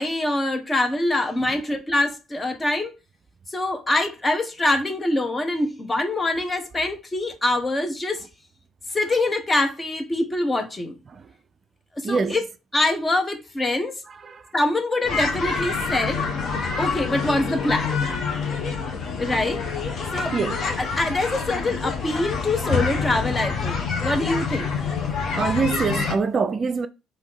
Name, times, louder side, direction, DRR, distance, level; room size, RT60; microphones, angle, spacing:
voice 1, 0.0-2.9 3.5-8.2 8.9-10.9 12.0-12.4 12.7-14.0 14.5-16.3 16.8-17.9 19.2-19.6 20.1-20.4 20.8-24.7, left 2 dB, 20° left, 1.1 m, -24 dB
sound 1, 15.0-26.1, left 5 dB, 50° left, 1.1 m, -27 dB
voice 2, 25.3-26.9, right 5 dB, 40° right, 0.4 m, -23 dB
3.6 x 2.9 x 4.6 m
hypercardioid pair, 50°, 0 cm